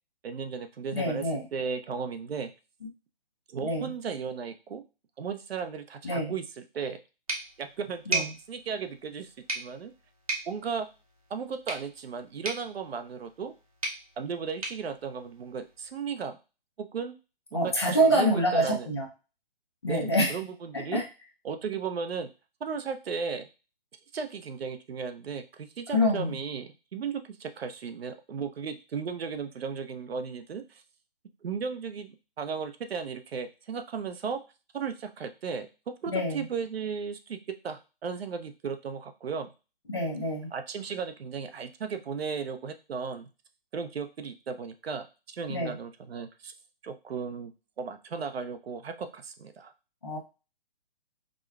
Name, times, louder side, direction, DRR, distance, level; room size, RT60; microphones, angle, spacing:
voice 1, 0.2-2.5 3.5-4.8 5.2-7.0 7.6-9.9 10.5-10.9 11.3-13.5 14.2-16.4 16.8-17.2 17.5-18.9 19.9-21.0 21.4-22.3 22.6-23.5 24.1-30.8 31.4-34.4 34.7-35.7 36.0-37.4 37.6-39.5 40.5-43.3 43.7-46.5 46.8-49.7, right 6 dB, 85° right, 8 dB, 0.7 m, -35 dB
voice 2, 0.9-1.4 3.6-3.9 6.0-6.3 8.1-8.3 17.5-19.1 19.8-20.3 20.7-21.0 25.9-26.4 36.1-36.4 39.9-40.5 45.5-45.7 50.0-50.2, equal, 30° left, -1 dB, 0.6 m, -26 dB
sound 1, 7.3-16.0, right 2 dB, 35° right, 0.8 m, -38 dB
5.0 x 2.2 x 2.3 m, 0.30 s
hypercardioid pair, 175°, 30 cm